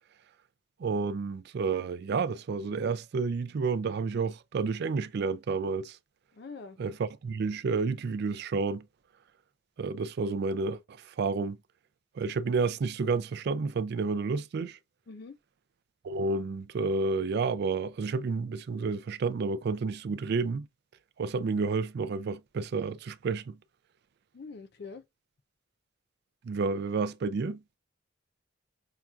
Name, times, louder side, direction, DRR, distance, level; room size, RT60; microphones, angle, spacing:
voice 1, 0.8-6.0 6.8-8.8 9.8-11.6 12.2-14.8 16.0-20.7 21.2-23.6 26.4-27.6, right 4 dB, 55° right, 0.3 m, -30 dB
voice 2, 6.3-6.8 15.1-15.4 24.3-25.0, left 4 dB, 55° left, 0.5 m, -44 dB
5.7 x 2.4 x 2.3 m
head